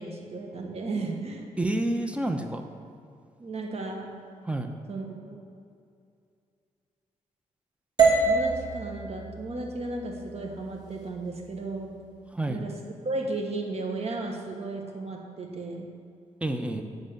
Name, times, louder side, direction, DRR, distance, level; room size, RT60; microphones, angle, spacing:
voice 1, 0.0-1.4 3.4-4.1 4.9-5.4 8.3-12.0 12.5-12.7 13.0-15.9, right 2 dB, 50° right, 1 dB, 1.4 m, -34 dB
voice 2, 1.6-2.6 4.5-4.7 12.3-12.6 16.4-16.8, right 1 dB, 10° right, 5 dB, 0.8 m, -28 dB
sound 1, 8.0-12.1, right 4 dB, 30° right, 2.3 m, -27 dB
8.0 x 6.3 x 7.8 m, 2.4 s
cardioid pair, 80°, 13 cm